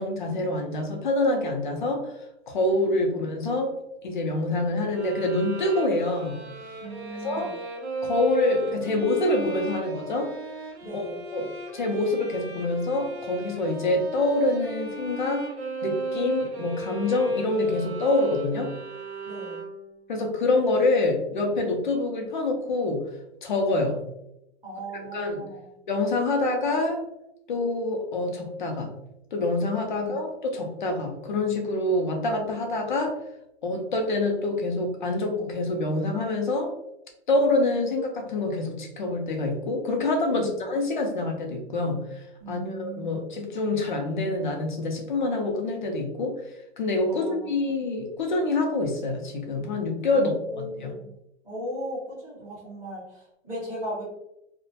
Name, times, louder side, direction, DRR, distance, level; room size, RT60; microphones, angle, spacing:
voice 1, 0.0-2.1 2.5-3.8 4.0-6.4 7.2-7.5 8.0-10.3 10.9-11.0 11.3-15.5 15.8-18.8 20.1-23.1 23.4-24.0 25.1-25.5 25.9-27.0 27.5-28.9 29.3-33.2 33.6-36.7 37.3-46.4 46.8-50.9, left 2 dB, 40° left, 2 dB, 0.5 m, -26 dB
sound 1, 4.9-20.0, right 3 dB, 60° right, 0.7 m, -36 dB
voice 2, 6.8-7.5 10.8-11.2 19.2-19.6 24.6-25.7 30.0-30.2 40.3-40.6 42.4-43.2 47.1-47.4 50.1-50.2 50.5-51.1 51.4-54.0, equal, 5° right, -16 dB, 0.8 m, -37 dB
2.3 x 2.1 x 2.6 m, 0.83 s
hypercardioid pair, 175°, 37 cm